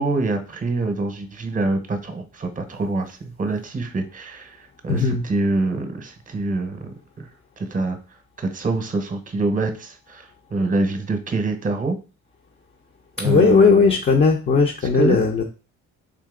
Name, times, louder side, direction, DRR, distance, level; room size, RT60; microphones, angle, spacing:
voice 1, 0.0-7.3 7.6-8.0 8.4-12.0 13.2-14.0 14.8-15.2, right 2 dB, 25° right, 7 dB, 0.9 m, -25 dB
voice 2, 4.9-5.2 13.2-15.4, left 4 dB, 35° left, 1 dB, 0.7 m, -17 dB
3.8 x 2.7 x 3.7 m, 0.33 s
cardioid pair, 90°, 30 cm